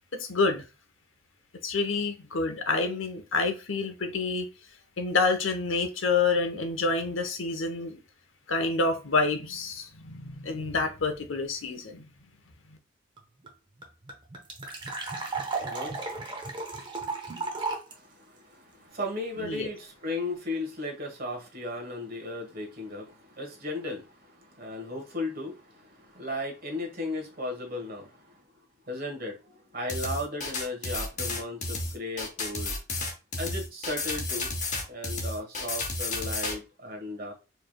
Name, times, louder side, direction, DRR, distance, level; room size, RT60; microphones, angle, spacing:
voice 1, 0.3-0.6 1.6-4.5 5.0-8.0 8.5-12.0 19.4-19.7, left 3 dB, 90° left, 0.8 m, -28 dB
sound 1, 13.2-13.3 13.4-13.5 13.8-17.9, right 3 dB, 25° right, 0.8 m, -34 dB
voice 2, 15.1-16.6 17.9-28.4 28.9-32.7 33.4-34.5 34.9-37.3, left 1 dB, 50° right, 1.4 m, -36 dB
sound 2, 29.9-36.6, left 3 dB, 40° left, 1.0 m, -32 dB
4.6 x 3.2 x 2.2 m
head